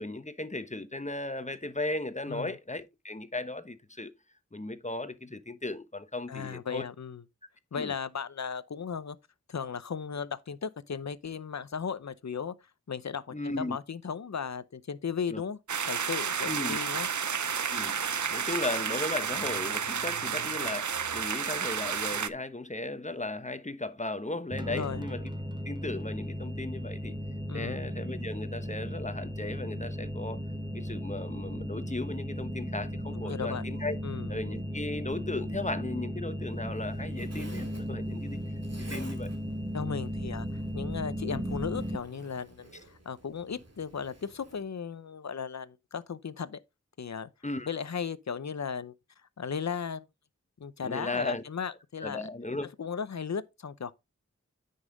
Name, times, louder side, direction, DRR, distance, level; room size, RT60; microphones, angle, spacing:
voice 1, 0.0-4.1 4.5-6.8 7.7-7.9 13.3-13.8 15.3-15.4 16.4-16.8 17.7-18.0 18.3-25.3 25.6-27.2 27.5-30.4 30.7-34.0 34.3-38.4 38.8-39.3 41.3-41.5 47.4-47.7 50.8-51.4 52.0-52.7, left 2 dB, 25° left, 1.0 m, -36 dB
voice 2, 6.3-7.2 7.7-9.2 9.5-12.5 12.9-15.6 15.9-17.1 24.7-25.0 27.5-27.8 33.2-33.6 34.0-34.3 39.7-42.7 43.1-46.6 47.0-47.3 47.7-48.9 49.4-50.0 50.6-52.2 52.8-53.9, left 6 dB, 65° left, 0.7 m, -36 dB
sound 1, 15.7-22.3, right 7 dB, 75° right, 0.6 m, -31 dB
sound 2, 24.5-42.0, equal, 15° right, 0.9 m, -36 dB
Zipper (clothing), 36.4-44.6, right 1 dB, 55° right, 2.5 m, -54 dB
9.9 x 5.5 x 3.9 m
wide cardioid pair, 55°, 30 cm